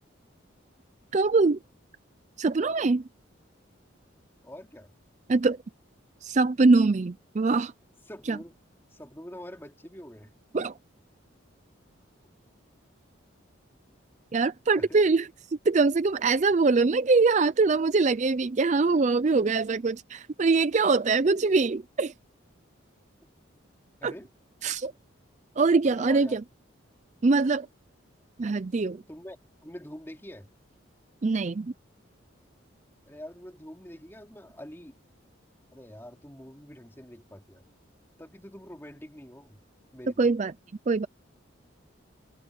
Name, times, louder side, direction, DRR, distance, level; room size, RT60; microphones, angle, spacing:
voice 1, 1.1-1.6 2.4-3.0 5.3-5.6 6.2-7.7 8.3-8.4 10.5-10.7 14.3-22.1 24.0-24.1 24.6-24.9 25.6-26.4 27.2-27.7 28.4-29.0 31.2-31.7 40.2-40.5 40.9-41.1, right 3 dB, 35° right, 0.4 m, -23 dB
voice 2, 4.4-4.9 8.1-8.6 8.9-10.3 14.7-15.0 24.0-24.3 25.8-26.4 29.1-29.4 29.6-30.5 33.1-35.0 35.7-37.7 38.2-39.6 39.9-40.3, equal, 10° left, 3.0 m, -45 dB
head